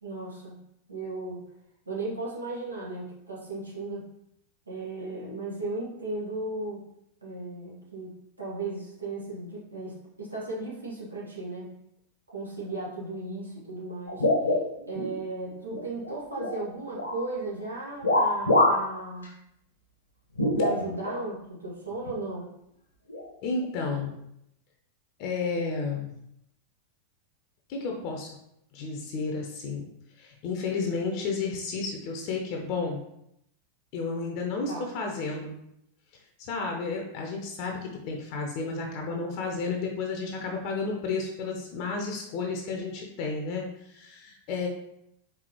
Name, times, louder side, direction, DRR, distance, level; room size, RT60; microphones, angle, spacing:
voice 1, 0.0-0.6 0.9-1.4 1.9-4.1 4.7-6.8 7.2-11.7 12.3-14.3 14.9-19.3 20.5-22.5 34.7-34.9, right 2 dB, 80° right, -5 dB, 1.4 m, -36 dB
sound 1, 14.1-15.1 15.5-16.6 16.9-17.3 18.0-18.9 19.2-19.3 20.4-21.2 22.1-22.2 23.1-23.3, left 1 dB, 75° left, 1.0 m, -25 dB
voice 2, 23.4-24.1 25.2-26.1 27.7-28.3 28.7-29.9 30.2-33.0 33.9-35.6 36.4-44.7, left 4 dB, 45° left, 1 dB, 0.7 m, -32 dB
4.7 x 3.6 x 3.0 m, 0.78 s
figure-of-eight pair, 90°, 0 cm